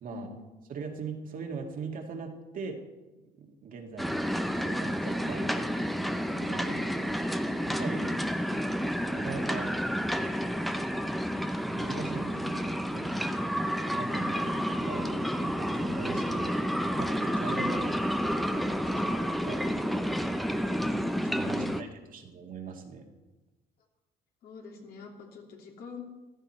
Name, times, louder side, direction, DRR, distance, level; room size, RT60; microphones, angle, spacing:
voice 1, 0.1-0.4 7.9-8.6 18.8-18.9 21.4-21.8 22.2-22.3 24.4-26.1, left 5 dB, 65° left, 0 dB, 3.0 m, -45 dB
voice 2, 0.7-2.8 3.4-4.3 4.6-5.8 6.4-8.1 8.8-9.8 11.7-13.3 13.9-16.6 17.0-18.0 18.6-23.1, right 5 dB, 55° right, 2 dB, 2.0 m, -41 dB
sound 1, 4.0-21.8, equal, ahead, 0.7 m, -30 dB
15.0 x 13.0 x 4.4 m, 1.1 s
cardioid pair, 110°, 17 cm